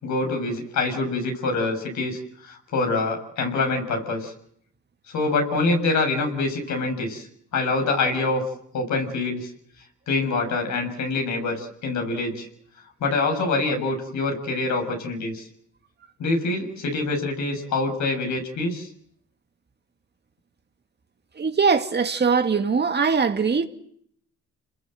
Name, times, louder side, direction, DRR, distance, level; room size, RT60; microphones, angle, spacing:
voice 1, 0.0-4.3 5.1-7.3 7.5-8.4 8.7-9.5 10.1-12.5 13.0-15.5 16.2-18.9, left 3 dB, 70° left, 6.9 m, -25 dB
voice 2, 21.4-23.7, right 5 dB, 35° right, 2.3 m, -21 dB
29.0 x 21.0 x 7.8 m
cardioid pair, 90°, 30 cm